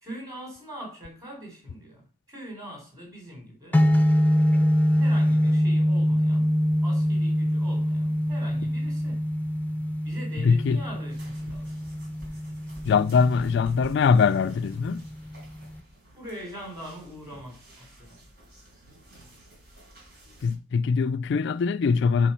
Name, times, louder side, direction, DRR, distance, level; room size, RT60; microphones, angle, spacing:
voice 1, 0.0-3.9 4.9-6.6 6.8-9.2 10.0-11.7 16.1-18.3, equal, 20° right, 3.9 m, -42 dB
sound 1, 3.7-15.8, equal, 10° left, 0.6 m, -25 dB
voice 2, 10.4-10.8 12.8-15.1 20.4-22.3, left 5 dB, 60° left, 0.3 m, -22 dB
sound 2, 11.1-20.5, right 1 dB, 55° right, 4.4 m, -50 dB
7.2 x 4.8 x 5.6 m
head